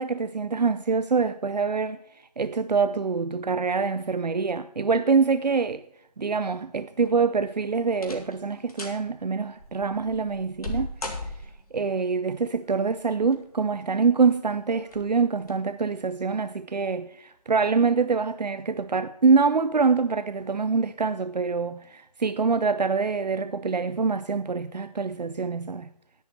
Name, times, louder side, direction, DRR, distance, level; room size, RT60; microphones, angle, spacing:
voice 1, 0.0-2.0 2.4-5.8 6.2-10.9 11.7-25.9, right 5 dB, 85° right, 0.5 m, -25 dB
sound 1, 7.0-7.4 7.9-8.4 8.7-9.0 9.6-11.8 13.0-13.6 14.0-14.1 14.8-15.1 15.4-15.5, left 1 dB, 65° left, 2.2 m, -37 dB
10.5 x 10.0 x 4.2 m
figure-of-eight pair, 150°, 21 cm